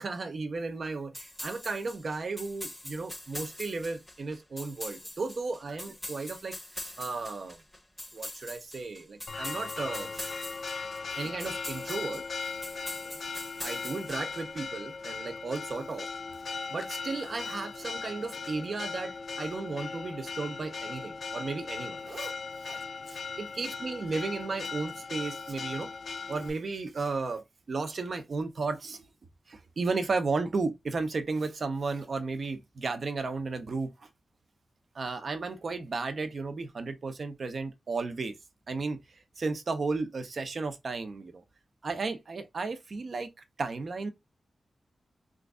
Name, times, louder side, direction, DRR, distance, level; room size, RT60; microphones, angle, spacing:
voice 1, 0.0-7.6 8.1-10.2 11.1-12.6 13.6-16.1 16.7-22.3 22.7-22.8 23.1-25.9 26.3-29.1 29.5-33.9 34.9-38.3 38.7-41.4 41.8-43.3 43.6-44.1, right 3 dB, 60° right, 0.6 m, -34 dB
sound 1, 1.1-14.6, left 1 dB, 10° left, 0.7 m, -43 dB
Church bell, 9.3-26.5, left 4 dB, 60° left, 0.4 m, -38 dB
3.1 x 2.5 x 3.5 m
cardioid pair, 75°, 0 cm